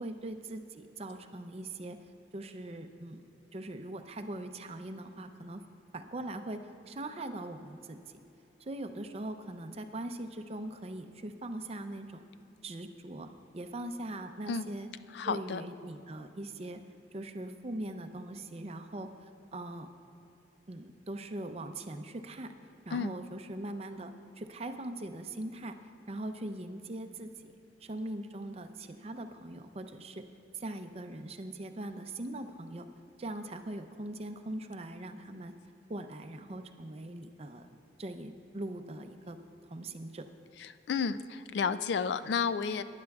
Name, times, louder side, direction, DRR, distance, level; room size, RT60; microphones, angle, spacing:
voice 1, 0.0-2.0 2.3-5.6 5.9-6.6 6.9-8.0 8.6-12.2 12.6-13.3 13.5-14.9 15.2-16.8 17.1-19.9 20.7-22.5 22.9-25.8 26.1-27.5 27.8-30.2 30.5-32.9 33.2-35.5 35.9-37.7 38.0-39.4 39.7-40.3, right 1 dB, 35° right, 7 dB, 0.5 m, -41 dB
voice 2, 15.1-15.6 22.9-23.2 40.6-42.8, left 6 dB, 70° left, 13 dB, 0.4 m, -32 dB
19.0 x 10.5 x 2.4 m, 2.9 s
head